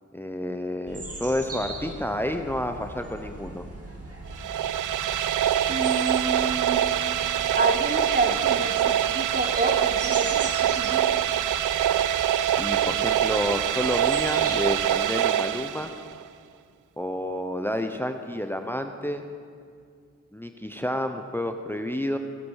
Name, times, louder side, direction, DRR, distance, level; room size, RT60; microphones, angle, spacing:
voice 1, 0.1-3.6 12.6-15.9 17.0-19.2 20.3-22.2, left 1 dB, 5° left, 7 dB, 0.8 m, -30 dB
sound 1, 0.9-14.9, right 2 dB, 50° right, 2.4 m, -40 dB
sound 2, 4.3-16.2, right 11 dB, 80° right, 0.5 m, -24 dB
voice 2, 5.7-7.0 7.6-11.2, right 2 dB, 30° right, 7 dB, 1.1 m, -29 dB
16.5 x 9.4 x 6.4 m, 2.2 s
cardioid pair, 60°, 31 cm